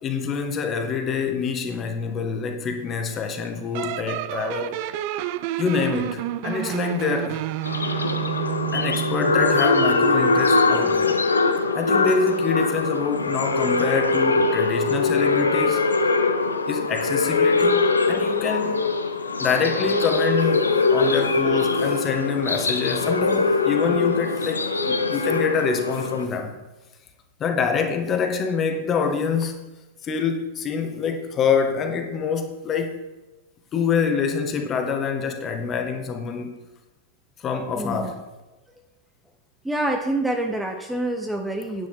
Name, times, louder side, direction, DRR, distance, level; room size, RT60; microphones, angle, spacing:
voice 1, 0.0-4.8 5.6-7.4 8.7-11.2 11.7-15.8 16.7-18.8 19.4-20.7 20.9-26.6 27.4-29.5 30.0-32.9 33.7-36.5 37.4-38.2, left 6 dB, 25° left, 5 dB, 1.6 m, -26 dB
sound 1, 3.7-9.8, right 14 dB, 45° right, 0.5 m, -29 dB
sound 2, 7.6-26.3, left 3 dB, 80° left, 0.8 m, -22 dB
voice 2, 37.7-38.1 39.6-41.9, right 1 dB, 5° right, 3 dB, 0.9 m, -26 dB
9.7 x 9.5 x 4.5 m, 1.1 s
figure-of-eight pair, 95°, 0 cm